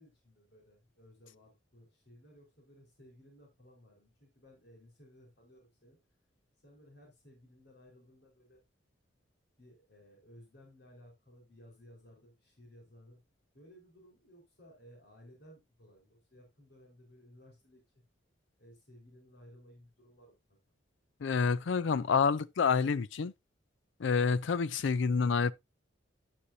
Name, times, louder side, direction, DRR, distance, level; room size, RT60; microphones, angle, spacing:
voice 1, 0.0-6.0 6.6-8.6 9.6-13.2 13.5-17.8 18.6-20.6, equal, 55° left, 4.3 m, -58 dB
voice 2, 21.2-23.3 24.0-25.5, left 5 dB, 70° left, 0.4 m, -28 dB
9.8 x 9.6 x 2.6 m
head